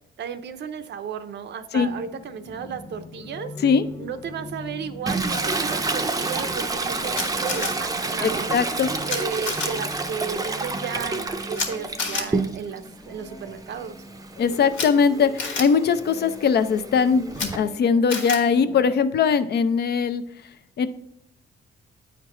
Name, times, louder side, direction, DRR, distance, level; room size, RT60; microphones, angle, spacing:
voice 1, 0.2-3.5 4.0-8.6 9.1-14.0, right 7 dB, 60° right, 11 dB, 0.6 m, -34 dB
sound 1, 1.8-19.0, left 1 dB, 15° left, 0.8 m, -42 dB
Toilet flush, 5.1-12.9 13.3-17.6, right 3 dB, 20° right, 0.6 m, -29 dB
Camera, 7.1-7.7 9.1-9.2 9.4-9.7 11.5-11.7 12.0-12.2 14.7-14.9 15.4-15.6 17.3-17.5 18.1-18.4, left 4 dB, 70° left, 1.5 m, -28 dB
voice 2, 8.2-8.9 14.4-20.2 20.8-20.9, left 6 dB, 55° left, 11 dB, 0.6 m, -21 dB
8.6 x 4.6 x 3.7 m, 0.73 s
cardioid pair, 90°, 20 cm